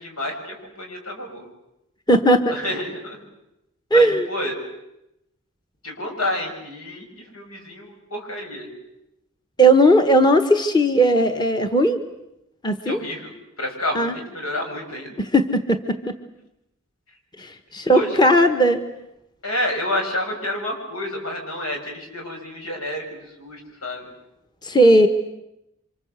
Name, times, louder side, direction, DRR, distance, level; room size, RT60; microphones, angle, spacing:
voice 1, 0.0-1.5 2.5-3.2 3.9-4.5 5.8-7.1 7.3-8.7 12.8-15.2 17.9-18.3 19.4-24.1, left 1 dB, 85° left, 3 dB, 7.3 m, -29 dB
voice 2, 2.1-2.5 3.9-4.3 9.6-12.0 12.6-13.0 13.9-14.1 15.2-16.2 17.4-18.8 24.6-25.1, right 1 dB, 20° left, 7 dB, 1.2 m, -17 dB
28.5 x 25.5 x 8.2 m, 0.87 s
head